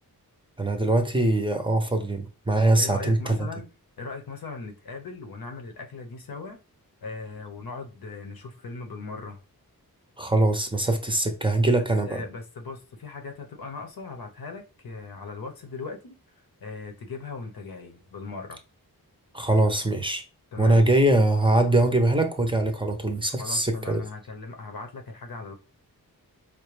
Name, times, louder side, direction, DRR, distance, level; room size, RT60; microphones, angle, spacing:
voice 1, 0.6-3.4 10.2-12.2 19.3-20.2 20.6-24.0, right 2 dB, 15° right, 0.6 m, -22 dB
voice 2, 2.6-3.7 4.0-6.6 7.0-9.4 11.8-16.2 16.6-18.6 20.5-20.9 23.4-25.5, left 4 dB, 75° left, 0.9 m, -39 dB
4.6 x 2.2 x 3.2 m
wide cardioid pair, 115°, 37 cm